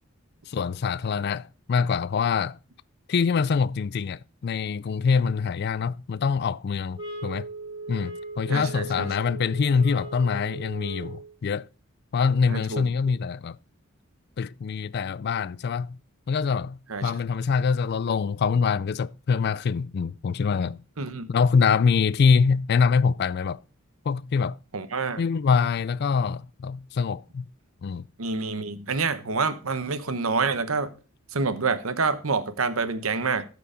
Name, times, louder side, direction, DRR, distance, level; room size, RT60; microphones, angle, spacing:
voice 1, 0.5-2.6 3.1-7.5 7.9-11.7 12.1-13.6 14.4-16.0 16.3-20.8 21.3-23.6 24.1-24.6 25.2-27.5 27.8-28.1, left 5 dB, 50° left, 0.3 m, -24 dB
sound 1, 7.0-11.3, right 2 dB, 25° right, 2.2 m, -38 dB
voice 2, 8.5-9.1 12.5-12.8 16.9-17.1 21.0-21.3 24.7-25.2 28.2-30.9 31.3-33.4, right 4 dB, 85° right, 1.0 m, -27 dB
13.0 x 4.9 x 5.0 m
head